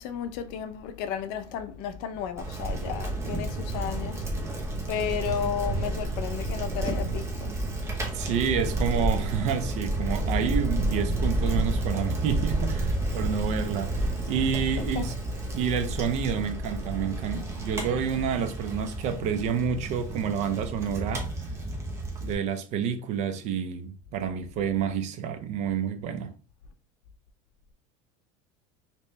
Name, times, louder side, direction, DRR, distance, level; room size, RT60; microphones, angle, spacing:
voice 1, 0.0-4.2 4.9-7.6 14.9-15.1, left 8 dB, 55° left, 0.5 m, -33 dB
Bicycle, 2.4-22.3, right 1 dB, 15° right, 0.9 m, -30 dB
voice 2, 8.1-15.1 15.5-21.3 22.2-26.3, right 7 dB, 45° right, 0.5 m, -29 dB
3.2 x 2.9 x 3.1 m
supercardioid pair, 145°, 17 cm